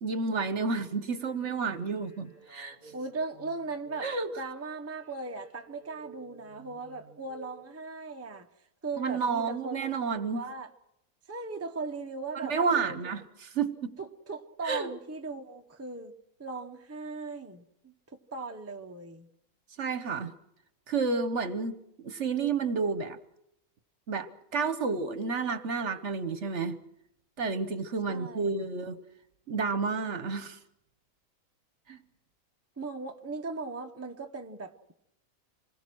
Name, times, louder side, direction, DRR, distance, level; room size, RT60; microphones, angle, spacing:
voice 1, 0.0-2.8 4.0-4.3 9.0-10.4 12.4-13.9 14.6-14.9 19.8-20.3 20.9-21.8 22.0-23.2 24.1-26.8 27.4-29.0 29.5-30.6 31.9-32.0, right 4 dB, 55° right, 12 dB, 1.3 m, -30 dB
sound 1, 1.0-7.7, right 3 dB, 30° left, 5.9 m, -55 dB
voice 2, 2.9-8.5 8.8-9.9 10.3-10.7 11.3-12.9 14.0-16.1 16.4-19.3 28.1-28.6 32.8-34.9, right 3 dB, 10° right, 5 dB, 0.9 m, -38 dB
26.5 x 20.5 x 6.2 m, 0.80 s
omnidirectional pair, 1.5 m